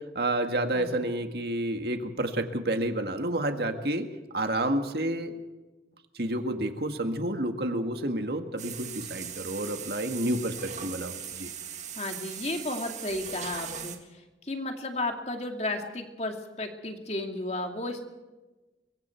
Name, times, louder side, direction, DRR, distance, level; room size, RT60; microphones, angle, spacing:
voice 1, 0.0-4.1 4.3-5.3 6.1-11.5, right 1 dB, 60° right, 6 dB, 1.9 m, -30 dB
sound 1, 8.6-14.0, right 8 dB, 40° right, 2.0 m, -39 dB
voice 2, 12.0-14.0 14.4-18.0, left 2 dB, 35° left, 4 dB, 2.5 m, -33 dB
25.0 x 23.5 x 4.6 m, 1.1 s
head